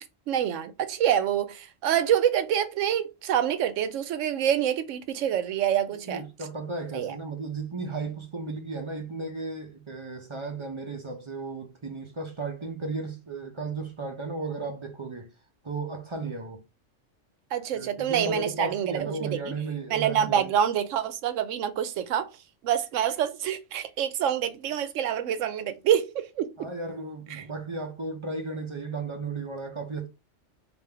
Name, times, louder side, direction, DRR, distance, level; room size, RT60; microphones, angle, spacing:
voice 1, 0.3-6.2 6.9-7.2 17.5-19.5 19.9-22.3 22.6-26.5, right 9 dB, 80° right, 0.9 m, -26 dB
voice 2, 5.9-15.3 15.6-16.6 17.7-20.5 26.6-30.1, right 3 dB, 35° right, 0.5 m, -34 dB
3.4 x 2.5 x 3.3 m
omnidirectional pair, 1.3 m